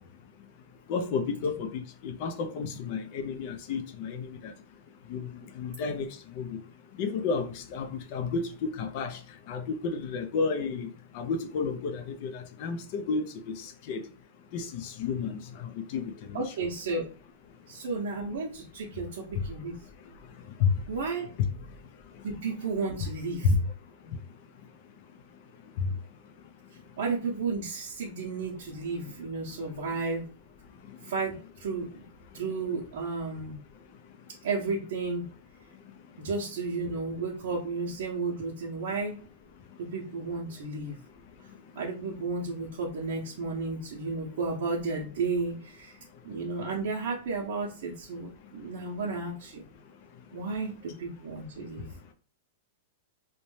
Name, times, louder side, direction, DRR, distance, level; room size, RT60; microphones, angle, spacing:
voice 1, 0.9-4.5 5.1-6.1 6.4-6.5 7.0-9.2 9.5-14.0 14.5-16.5 20.6-20.7 21.4-21.5 23.4-23.5, left 5 dB, 40° left, 0.4 m, -31 dB
voice 2, 16.3-17.1 17.7-19.8 20.9-21.3 22.2-23.5 27.0-30.2 31.0-31.9 32.3-33.6 34.4-35.2 36.2-39.2 39.8-41.0 41.7-45.9 46.2-49.6 50.3-51.9, right 4 dB, 60° right, 0.7 m, -33 dB
2.7 x 2.1 x 3.1 m
supercardioid pair, 170°, 0 cm